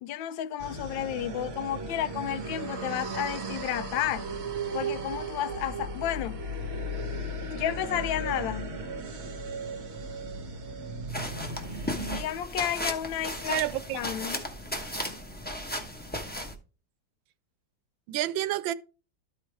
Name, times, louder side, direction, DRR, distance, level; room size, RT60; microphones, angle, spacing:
voice 1, 0.0-4.3 4.7-6.4 7.5-8.7 12.1-13.6 13.9-14.4, left 11 dB, 80° left, 1.3 m, -32 dB
sound 1, 0.6-12.2, right 2 dB, 45° right, 1.0 m, -36 dB
sound 2, 11.1-16.5, equal, 10° left, 0.6 m, -35 dB
voice 2, 13.5-14.0 18.1-18.7, right 14 dB, 80° right, 1.3 m, -29 dB
13.0 x 4.6 x 3.4 m
omnidirectional pair, 2.1 m